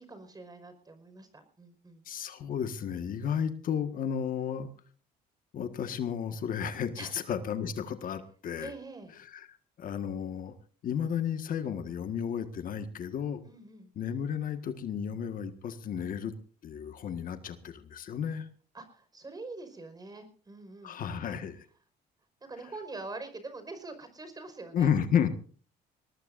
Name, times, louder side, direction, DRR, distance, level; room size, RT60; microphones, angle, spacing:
voice 1, 0.0-2.0 7.0-7.1 8.6-9.1 13.4-13.9 18.7-21.0 22.5-24.9, right 3 dB, 25° right, 8 dB, 5.1 m, -44 dB
voice 2, 2.1-4.7 5.5-8.7 9.2-10.6 10.8-13.4 14.0-16.3 16.6-18.5 20.8-21.7 24.7-25.3, left 8 dB, 55° left, 8 dB, 1.7 m, -32 dB
22.0 x 19.5 x 2.6 m, 0.43 s
cardioid pair, 110°, 17 cm